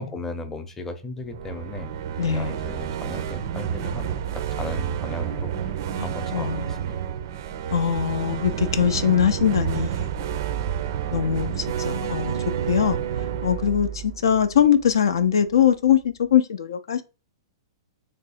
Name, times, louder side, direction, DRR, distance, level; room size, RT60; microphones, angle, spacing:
voice 1, 0.0-1.9 2.3-6.9, left 2 dB, 15° left, 0.6 m, -36 dB
sound 1, 1.2-15.2, right 9 dB, 50° right, 0.3 m, -29 dB
voice 2, 2.2-2.7 6.0-6.7 7.7-10.5 11.1-12.4 12.7-13.0 13.4-17.0, left 8 dB, 65° left, 0.3 m, -22 dB
3.2 x 2.6 x 4.0 m
figure-of-eight pair, 110°, 2 cm